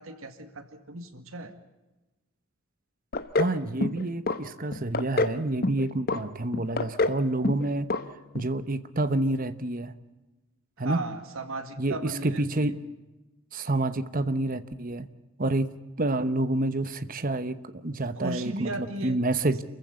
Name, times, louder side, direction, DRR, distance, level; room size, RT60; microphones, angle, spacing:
voice 1, 0.0-1.5 10.8-12.7 18.1-19.2, right 2 dB, 70° right, 9 dB, 2.1 m, -36 dB
sound 1, 3.1-3.5 3.8-4.4 4.7-5.4 5.6-6.2 6.5-7.2 7.4-7.6 7.9-8.0 8.3-8.4, left 2 dB, 45° left, 1.1 m, -26 dB
voice 2, 3.3-7.9 8.3-9.9 10.8-11.0 11.8-12.8 13.5-15.1 15.4-15.7 16.0-19.6, right 2 dB, 40° right, 12 dB, 1.0 m, -28 dB
28.0 x 15.0 x 8.3 m, 1.1 s
head